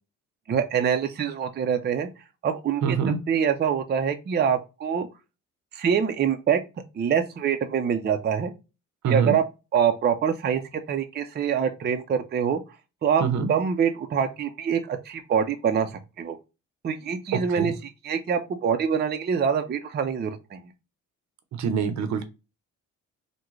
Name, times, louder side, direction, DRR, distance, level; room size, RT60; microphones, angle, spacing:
voice 1, 0.5-2.1 2.4-5.1 5.7-6.6 7.0-8.5 9.1-9.4 9.7-12.6 13.0-13.2 13.5-15.9 16.2-16.4 16.8-17.7 18.0-20.6, right 7 dB, 35° right, 6 dB, 0.5 m, -25 dB
voice 2, 2.8-3.2 9.0-9.4 13.2-13.5 17.3-17.7 21.5-22.2, right 6 dB, 70° right, 9 dB, 0.7 m, -25 dB
3.5 x 2.2 x 3.1 m, 0.28 s
cardioid pair, 90°, 30 cm